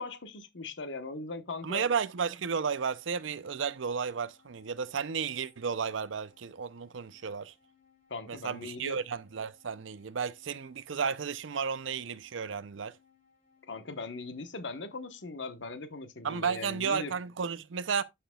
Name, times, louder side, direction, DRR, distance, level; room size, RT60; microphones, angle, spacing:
voice 1, 0.0-1.9 8.1-9.0 13.7-17.1, left 3 dB, 75° left, 1.1 m, -39 dB
voice 2, 1.6-7.5 8.3-12.9 16.2-18.0, right 6 dB, 85° right, 0.6 m, -33 dB
sound 1, 2.4-15.3, left 6 dB, 50° left, 4.0 m, -67 dB
11.5 x 5.9 x 2.3 m
head